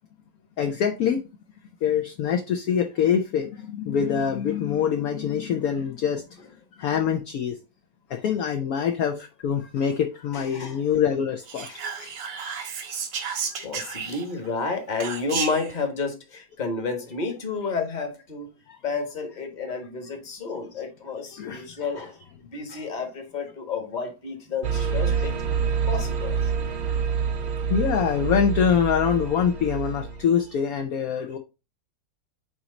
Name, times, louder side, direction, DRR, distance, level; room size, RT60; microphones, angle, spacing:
voice 1, 0.6-1.2 1.8-6.2 6.8-7.6 8.1-11.7 18.7-18.8 21.3-21.8 25.1-25.2 27.7-31.4, left 7 dB, 65° left, 1.0 m, -24 dB
voice 2, 10.3-10.8 11.6-12.1 13.6-18.5 18.8-22.2 22.4-25.3 25.9-26.4, left 4 dB, 30° left, 1.2 m, -31 dB
Whispering, 11.5-14.5 15.0-15.7, right 6 dB, 80° right, 1.6 m, -32 dB
sound 1, 24.6-30.3, right 6 dB, 65° right, 1.1 m, -27 dB
8.4 x 3.0 x 3.8 m
omnidirectional pair, 1.8 m